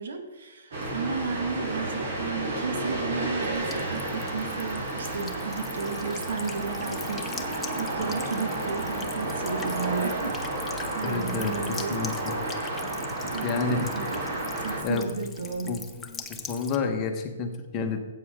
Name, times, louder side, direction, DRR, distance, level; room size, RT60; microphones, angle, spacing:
voice 1, 0.0-7.4 7.8-12.1 13.3-14.2 14.6-15.8, right 5 dB, 70° right, 5 dB, 1.6 m, -34 dB
sound 1, 0.7-14.8, right 1 dB, 50° right, 3.5 m, -31 dB
Buzz / Water tap faucet / Trickle dribble, 3.6-16.8, left 5 dB, 10° left, 0.6 m, -43 dB
voice 2, 11.0-12.4 13.4-13.9 14.8-15.1 15.7-15.8 16.3-18.0, left 4 dB, 25° left, 4 dB, 1.1 m, -29 dB
14.0 x 8.3 x 3.7 m, 1.3 s
hypercardioid pair, 160°, 0 cm